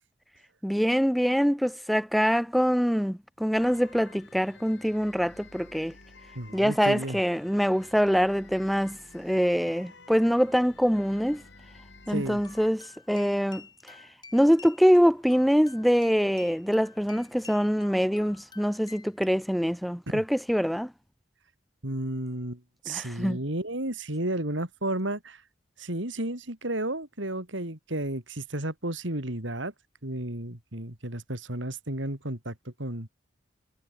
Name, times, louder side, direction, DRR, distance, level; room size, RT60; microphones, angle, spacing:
voice 1, 0.6-5.9 6.5-11.4 12.1-20.9 22.9-23.4, equal, ahead, 1.2 m, -24 dB
sound 1, 3.5-12.7, left 3 dB, 65° left, 7.0 m, -52 dB
voice 2, 6.3-7.2 12.1-12.4 20.1-20.2 21.8-25.4 25.8-29.7 30.0-32.5 32.8-33.1, right 1 dB, 75° right, 4.1 m, -32 dB
sound 2, 12.0-19.3, left 4 dB, 20° left, 6.7 m, -51 dB
head